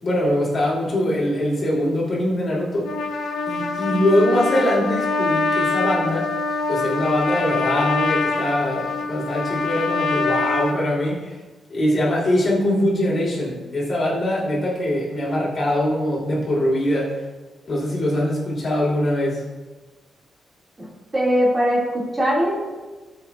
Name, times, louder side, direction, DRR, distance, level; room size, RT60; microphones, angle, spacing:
voice 1, 0.0-2.9 3.5-6.3 6.7-11.2 11.7-17.2 17.7-19.4, left 1 dB, 35° left, -5 dB, 3.3 m, -22 dB
Trumpet, 2.8-10.8, left 3 dB, 80° left, 1.1 m, -24 dB
voice 2, 21.1-22.5, equal, 20° right, -5 dB, 2.4 m, -20 dB
18.5 x 7.7 x 2.5 m, 1.3 s
wide cardioid pair, 180°, 0 cm